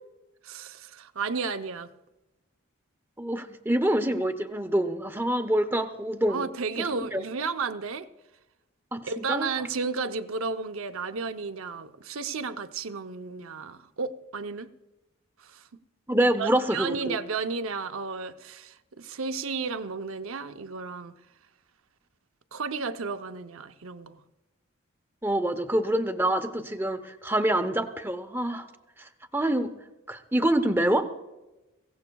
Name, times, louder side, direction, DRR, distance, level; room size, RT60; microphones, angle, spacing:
voice 1, 0.4-1.9 6.3-8.1 9.0-14.7 15.4-15.6 16.4-21.1 22.5-24.2, right 4 dB, 75° right, 0.7 m, -33 dB
voice 2, 3.2-6.5 6.8-7.2 8.9-9.5 16.1-17.2 25.2-28.7 29.0-29.7 30.1-31.1, right 1 dB, 10° right, 0.7 m, -26 dB
22.0 x 17.0 x 2.3 m
head